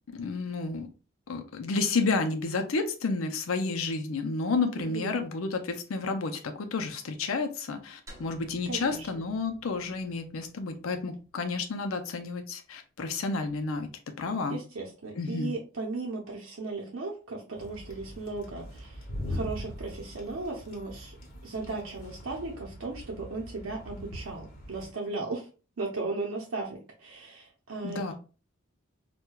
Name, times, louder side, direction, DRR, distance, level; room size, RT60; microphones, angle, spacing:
voice 1, 0.1-0.9 1.3-13.9 14.2-14.6 15.2-15.5 27.8-28.1, left 4 dB, 85° left, 6 dB, 0.5 m, -31 dB
voice 2, 4.8-5.2 8.7-9.2 14.5-21.2 21.4-25.5 25.8-28.1, right 3 dB, 80° right, -2 dB, 0.7 m, -36 dB
sound 1, 8.1-12.4, left 1 dB, 15° right, 0.6 m, -55 dB
sound 2, 17.5-24.9, equal, 45° left, 1.2 m, -41 dB
4.5 x 2.2 x 2.2 m, 0.35 s
head